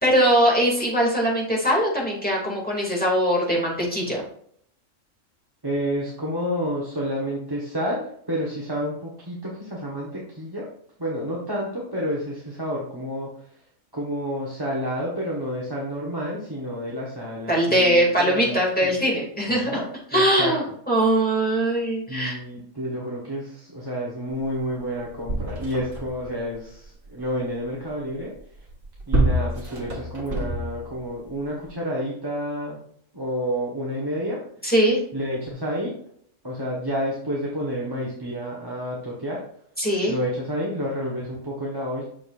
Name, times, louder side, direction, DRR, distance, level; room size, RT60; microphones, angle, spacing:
voice 1, 0.0-4.2 17.5-19.7 20.1-22.4 34.6-35.0 39.8-40.1, right 1 dB, 5° left, -4 dB, 2.4 m, -21 dB
voice 2, 5.6-10.6 11.0-13.5 13.9-18.9 19.5-20.5 22.1-28.3 29.1-32.8 33.1-34.4 35.1-36.0 36.4-39.4 40.1-42.0, equal, 20° right, -5 dB, 1.3 m, -30 dB
sound 1, 24.6-24.7 24.9-26.3 28.6-31.0 31.7-31.8, right 1 dB, 90° right, 1.8 m, -26 dB
7.6 x 6.6 x 2.6 m, 0.64 s
omnidirectional pair, 1.4 m